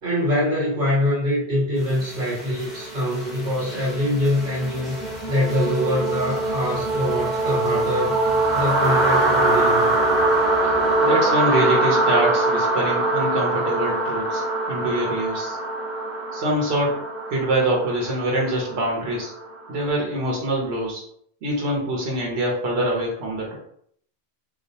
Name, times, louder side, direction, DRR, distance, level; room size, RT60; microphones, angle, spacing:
voice 1, 0.0-5.0 5.3-8.2 8.5-9.9, left 1 dB, 55° right, -5 dB, 1.2 m, -24 dB
sound 1, 1.9-19.7, right 2 dB, ahead, 0.9 m, -23 dB
voice 2, 11.0-14.4 14.7-15.6 16.3-17.0 17.3-19.3 19.7-21.0 21.4-23.5, right 1 dB, 80° right, -2 dB, 1.0 m, -24 dB
2.4 x 2.0 x 2.7 m, 0.64 s
omnidirectional pair, 1.1 m